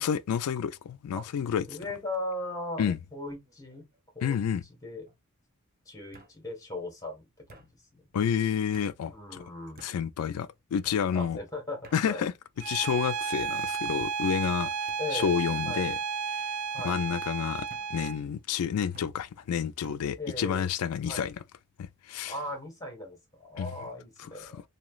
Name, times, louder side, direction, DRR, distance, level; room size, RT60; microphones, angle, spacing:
voice 1, 0.0-1.7 2.8-3.0 4.2-4.6 8.1-9.4 9.8-11.4 11.9-12.3 12.7-16.0 16.3-16.5 16.8-21.3 21.8-22.3 23.6-23.7 24.4-24.5, left 8 dB, 80° left, 0.3 m, -30 dB
voice 2, 1.6-3.9 4.1-5.1 5.8-8.2 9.1-9.9 11.1-12.3 15.0-15.3 15.6-15.9 16.7-17.0 20.2-20.7 21.0-21.3 22.2-24.6, left 1 dB, 15° left, 1.3 m, -38 dB
sound 1, 2.7-3.1 3.4-4.0 5.1-5.2 6.1-6.3 7.5-7.7 8.7-8.9 9.8-10.0 10.8-11.1 11.8-12.0 12.8-13.2 14.0-14.2 14.9-15.0 15.9-16.1 16.8-17.0 17.7-17.9 18.9-19.1 19.8-20.0, right 3 dB, 40° right, 0.6 m, -53 dB
Bowed string instrument, 12.6-18.2, right 6 dB, 85° right, 0.4 m, -33 dB
3.1 x 2.8 x 2.3 m
head